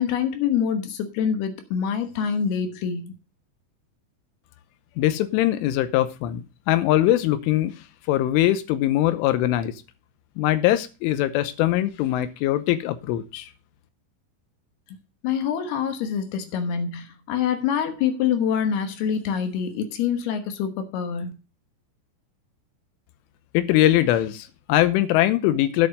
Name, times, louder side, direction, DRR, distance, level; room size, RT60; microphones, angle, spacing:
voice 1, 0.0-3.1 15.2-21.3, left 7 dB, 70° left, 2.7 m, -25 dB
voice 2, 5.0-7.7 8.1-9.7 10.4-13.5 23.5-25.9, left 14 dB, 90° left, 3.3 m, -22 dB
11.0 x 6.9 x 5.2 m
omnidirectional pair, 5.7 m